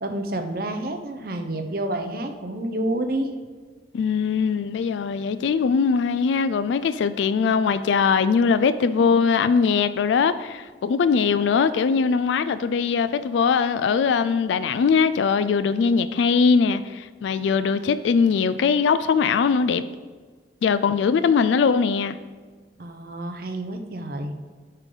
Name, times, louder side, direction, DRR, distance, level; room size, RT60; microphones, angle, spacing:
voice 1, 0.0-3.3 22.8-24.3, right 1 dB, 55° right, 5 dB, 0.8 m, -29 dB
voice 2, 3.9-19.8 20.6-22.2, left 5 dB, 85° left, 13 dB, 0.3 m, -21 dB
8.8 x 3.8 x 4.9 m, 1.5 s
head